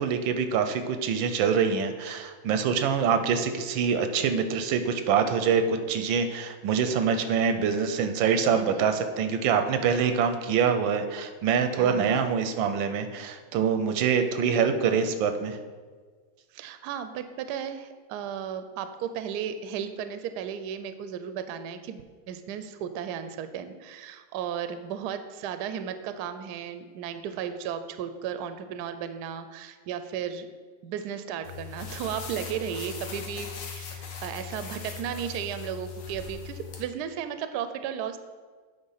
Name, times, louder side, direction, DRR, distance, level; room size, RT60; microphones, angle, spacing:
voice 1, 0.0-15.6, right 6 dB, 90° right, 8 dB, 1.4 m, -25 dB
voice 2, 8.5-8.9 11.8-12.2 16.5-30.5 30.8-38.2, right 8 dB, 70° right, 10 dB, 1.0 m, -35 dB
sound 1, 31.4-36.8, left 7 dB, 70° left, 1.6 m, -39 dB
8.9 x 3.7 x 5.5 m, 1.5 s
omnidirectional pair, 2.1 m